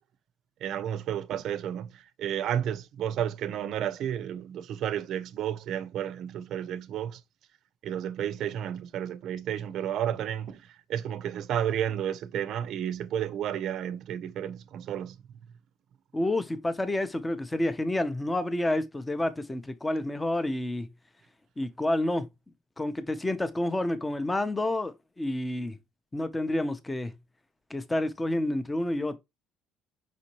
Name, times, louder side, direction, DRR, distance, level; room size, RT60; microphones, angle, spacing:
voice 1, 0.6-7.2 7.8-15.2, right 10 dB, 65° right, 0.5 m, -32 dB
voice 2, 16.1-20.9 21.6-22.3 22.8-25.8 26.1-27.1 27.7-29.2, left 1 dB, 15° left, 0.6 m, -29 dB
5.2 x 2.7 x 2.9 m
cardioid pair, 100°, 0 cm